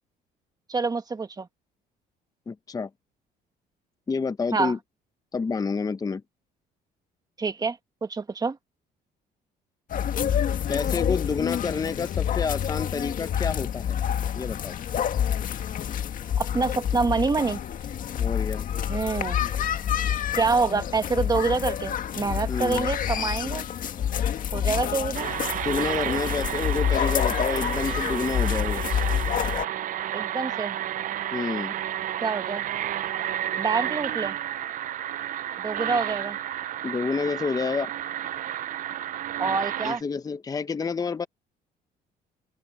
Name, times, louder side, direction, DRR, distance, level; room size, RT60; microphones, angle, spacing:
voice 1, 0.7-1.5 4.5-4.7 7.4-8.6 16.4-17.6 18.9-19.4 20.4-23.7 24.5-25.3 30.1-30.8 32.2-32.6 33.6-34.4 35.6-36.4 39.4-40.0, right 4 dB, 25° right, 1.7 m, -26 dB
voice 2, 2.5-2.9 4.1-4.8 5.3-6.2 10.7-14.0 14.4-14.7 18.2-18.7 22.5-22.9 25.6-28.8 31.3-31.7 36.8-37.9 39.8-41.3, left 5 dB, 20° left, 0.8 m, -29 dB
sound 1, 9.9-29.7, left 9 dB, 55° left, 1.8 m, -28 dB
sound 2, 25.1-40.0, right 12 dB, 50° right, 0.6 m, -31 dB
open air
cardioid pair, 110°, 17 cm